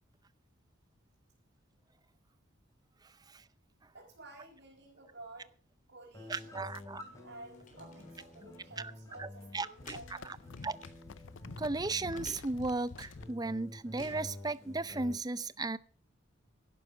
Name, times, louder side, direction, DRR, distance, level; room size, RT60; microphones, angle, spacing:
voice 1, 3.9-5.5 5.9-6.6 7.2-10.4, right 2 dB, 55° right, 4.6 m, -52 dB
sound 1, 6.1-15.1, left 1 dB, 15° left, 2.9 m, -50 dB
sound 2, 6.3-9.0 9.2-13.3, left 4 dB, 70° left, 0.6 m, -51 dB
voice 2, 6.3-7.0 8.8-8.9 9.2-9.3 9.5-10.0 10.2-10.4 10.6-10.8 11.6-15.8, right 3 dB, 20° right, 0.5 m, -35 dB
sound 3, 6.6-15.1, left 2 dB, 40° left, 3.6 m, -57 dB
11.5 x 9.4 x 7.2 m
head